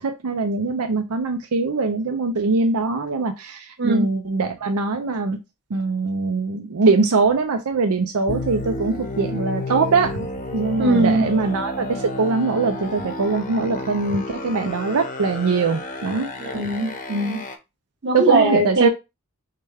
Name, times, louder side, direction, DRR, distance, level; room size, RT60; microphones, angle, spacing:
voice 1, 0.0-5.4 5.7-10.3 10.5-16.3 18.1-18.9, right 4 dB, 85° right, 0.5 m, -22 dB
sound 1, 8.3-17.6, left 2 dB, 35° left, 0.7 m, -31 dB
voice 2, 10.8-11.3 16.4-17.4 18.0-18.9, right 2 dB, 50° right, 1.3 m, -20 dB
6.5 x 2.2 x 3.4 m
head